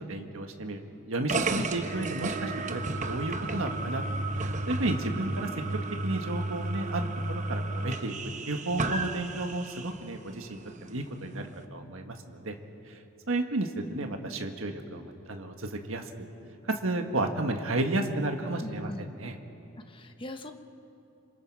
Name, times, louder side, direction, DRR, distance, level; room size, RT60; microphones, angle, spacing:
voice 1, 0.1-0.8 1.1-2.8 3.1-4.0 4.4-5.5 6.0-8.1 8.5-12.5 12.9-13.0 13.3-16.1 16.6-19.4, right 2 dB, 70° right, 5 dB, 1.6 m, -32 dB
sound 1, 1.3-10.0, right 2 dB, 35° right, 0.9 m, -33 dB
voice 2, 18.6-19.1 19.9-20.5, left 1 dB, 25° left, 7 dB, 0.9 m, -40 dB
26.5 x 26.5 x 4.8 m, 2.9 s
head